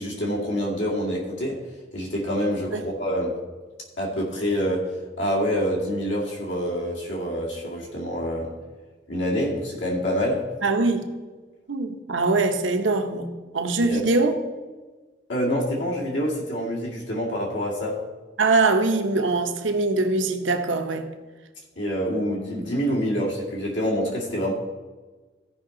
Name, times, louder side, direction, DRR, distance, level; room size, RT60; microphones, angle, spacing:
voice 1, 0.0-1.6 1.9-3.4 4.0-4.9 5.2-8.5 9.1-10.5 13.8-14.0 15.3-18.0 21.8-24.5, equal, 75° left, 2.2 m, -26 dB
voice 2, 10.6-11.1 11.7-13.3 13.5-14.3 18.4-21.1, right 3 dB, 90° right, 0.9 m, -22 dB
15.0 x 5.5 x 3.8 m
head